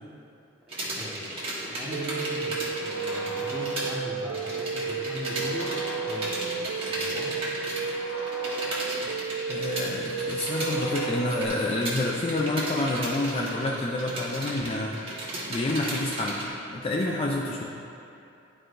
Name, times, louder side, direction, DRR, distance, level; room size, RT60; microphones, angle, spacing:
sound 1, 0.7-3.9 4.2-16.5, right 1 dB, 30° right, 1.3 m, -35 dB
voice 1, 0.8-1.2 1.7-5.7 6.0-7.4, equal, 5° right, -6 dB, 1.1 m, -39 dB
sound 2, 1.9-11.5, right 5 dB, 65° right, 0.3 m, -33 dB
sound 3, 2.7-4.6 5.3-7.1 7.8-9.7 10.3-12.2, left 2 dB, 55° left, 1.0 m, -42 dB
voice 2, 9.5-14.9 15.5-17.6, left 2 dB, 30° left, -2 dB, 0.4 m, -28 dB
11.0 x 4.7 x 2.6 m, 2.6 s
head